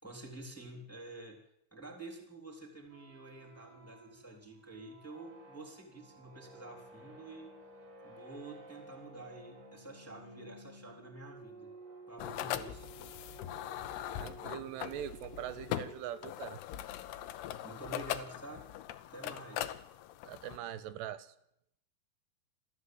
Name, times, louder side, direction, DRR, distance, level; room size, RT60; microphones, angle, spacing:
voice 1, 0.0-1.4 1.7-7.6 8.0-11.7 12.1-12.9 17.3-18.7 19.1-19.7, right 2 dB, 5° left, 0 dB, 2.8 m, -49 dB
sound 1, 2.8-16.6, right 2 dB, 55° right, 5.1 m, -54 dB
sound 2, 12.2-20.6, left 12 dB, 80° left, 2.8 m, -41 dB
voice 2, 14.2-16.6 20.3-21.3, right 11 dB, 90° right, 13 dB, 3.3 m, -42 dB
29.0 x 13.0 x 7.9 m, 0.78 s
omnidirectional pair, 4.7 m